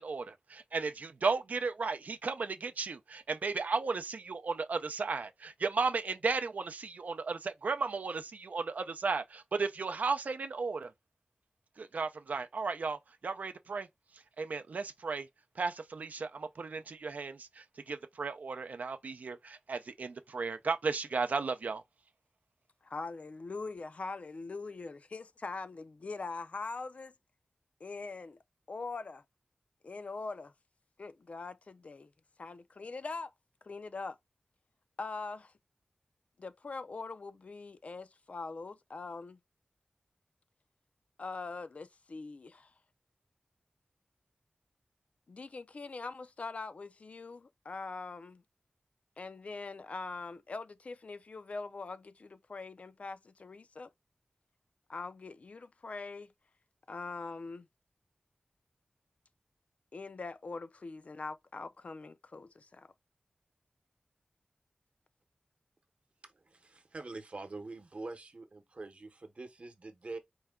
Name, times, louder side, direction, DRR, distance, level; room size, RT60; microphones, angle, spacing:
voice 1, 0.0-10.9 11.8-13.9 14.4-15.3 15.6-21.8, right 4 dB, 80° right, 0.4 m, -35 dB
voice 2, 22.8-27.1 27.8-28.4 28.7-29.2 29.8-30.5 31.0-32.1 32.4-33.3 33.6-34.2 35.0-35.5 36.4-39.4 41.2-42.7 45.3-48.4 49.2-53.9 54.9-56.3 56.9-57.7 59.9-62.9, left 3 dB, 55° left, 0.3 m, -42 dB
voice 3, 66.2-70.2, right 3 dB, 50° right, 0.8 m, -45 dB
4.5 x 2.2 x 3.4 m
wide cardioid pair, 85°, 3 cm